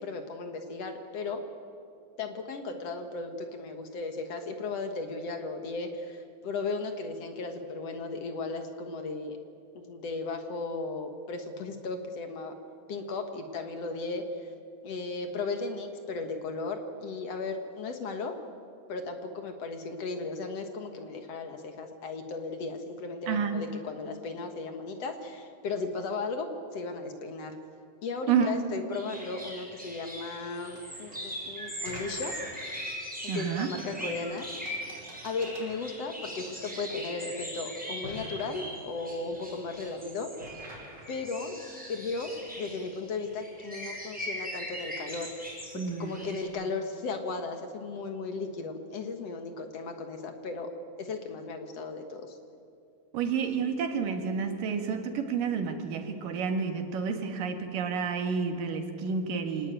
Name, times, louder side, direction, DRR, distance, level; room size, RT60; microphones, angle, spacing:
voice 1, 0.0-1.4 2.2-9.4 9.7-12.5 12.9-14.5 14.8-18.4 18.9-27.6 28.0-32.3 33.3-34.5 35.2-40.3 41.1-41.6 41.9-50.7 51.0-52.4, left 3 dB, 55° left, 6 dB, 2.3 m, -36 dB
voice 2, 23.3-23.6 28.3-28.6 33.3-33.7 45.8-46.2 53.1-59.7, right 6 dB, 90° right, 5 dB, 3.5 m, -30 dB
sound 1, 28.9-46.4, equal, ahead, 4.8 m, -41 dB
sound 2, 29.1-46.1, right 1 dB, 55° right, 6.2 m, -51 dB
24.5 x 19.0 x 9.0 m, 2.4 s
omnidirectional pair, 3.8 m